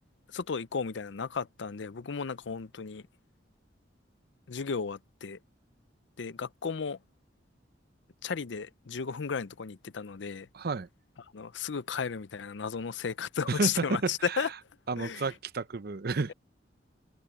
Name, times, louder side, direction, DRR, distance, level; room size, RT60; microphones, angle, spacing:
voice 1, 0.3-3.0 4.5-5.4 6.2-7.0 8.2-10.5 11.3-14.5 15.0-15.3, left 6 dB, 70° left, 0.6 m, -34 dB
voice 2, 10.5-10.9 13.5-14.5 14.9-16.3, right 3 dB, 55° right, 0.7 m, -31 dB
open air
head